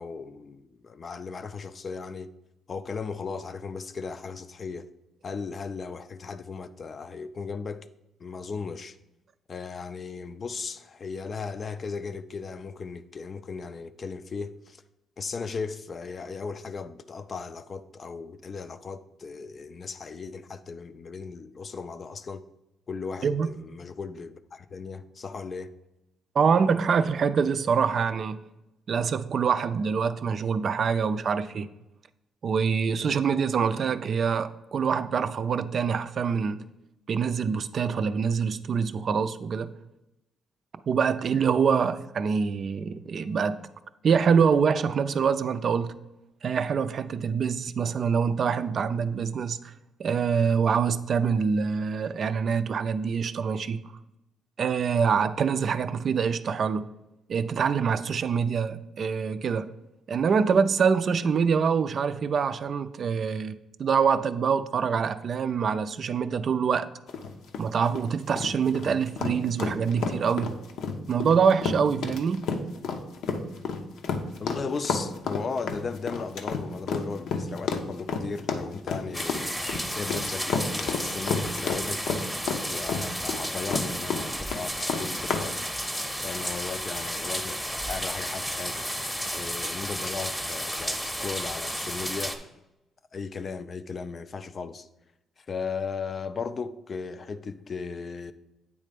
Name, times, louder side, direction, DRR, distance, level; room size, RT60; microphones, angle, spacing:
voice 1, 0.0-2.3 2.7-4.9 5.2-7.9 8.2-9.0 9.5-14.8 15.2-22.4 22.9-25.7 74.4-79.5 79.9-82.1 82.7-85.6 86.2-88.9 89.3-92.5 93.1-94.9 95.5-98.3, left 5 dB, 45° left, 0.4 m, -36 dB
voice 2, 26.4-28.4 28.9-31.7 32.4-36.6 37.1-39.7 40.9-43.6 44.0-46.0 46.4-49.6 50.0-53.8 54.6-56.9 57.3-59.7 60.1-66.9 67.6-70.6 71.1-72.5, right 6 dB, 55° right, 0.4 m, -25 dB
sound 1, 67.1-85.5, left 5 dB, 75° left, 0.7 m, -30 dB
sound 2, 79.1-92.4, equal, 5° left, 0.8 m, -32 dB
8.5 x 3.3 x 5.1 m
cardioid pair, 90°, 0 cm